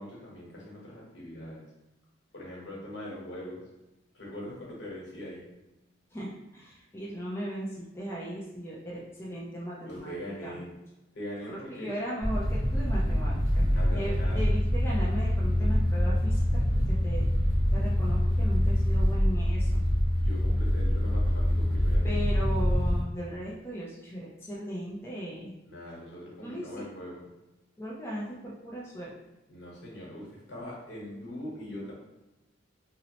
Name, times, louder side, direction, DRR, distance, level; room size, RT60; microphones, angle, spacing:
voice 1, 0.0-1.7 2.3-3.8 4.1-5.7 9.8-10.8 11.1-11.9 13.6-14.5 20.1-22.2 25.6-27.5 29.5-31.9, equal, 65° left, -5 dB, 1.0 m, -42 dB
voice 2, 6.1-10.2 10.4-10.6 11.5-17.3 17.7-19.8 22.0-25.5 26.4-26.9 27.8-29.1, equal, 15° left, -5 dB, 0.4 m, -37 dB
sound 1, 12.2-23.0, equal, 25° right, 1.0 m, -25 dB
2.8 x 2.0 x 2.9 m, 0.98 s
head